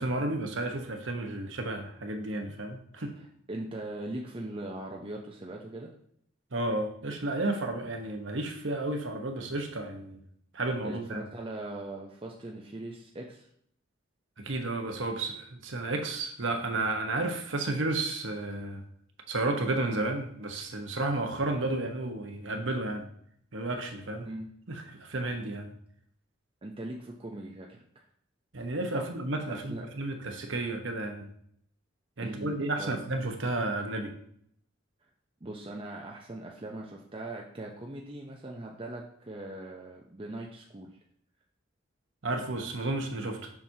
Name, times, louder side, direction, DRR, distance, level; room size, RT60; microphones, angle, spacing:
voice 1, 0.0-3.2 6.5-10.2 10.5-11.2 14.4-18.8 19.3-23.1 23.5-24.3 24.7-25.7 28.5-31.3 32.2-34.1 42.2-43.5, right 2 dB, 80° right, 4 dB, 1.1 m, -32 dB
voice 2, 3.2-5.9 10.8-13.5 24.2-24.5 26.6-28.0 28.9-29.1 29.5-29.9 32.2-32.5 32.8-33.0 35.4-40.9, right 2 dB, 30° right, -1 dB, 0.6 m, -40 dB
7.1 x 6.1 x 2.8 m, 0.66 s
head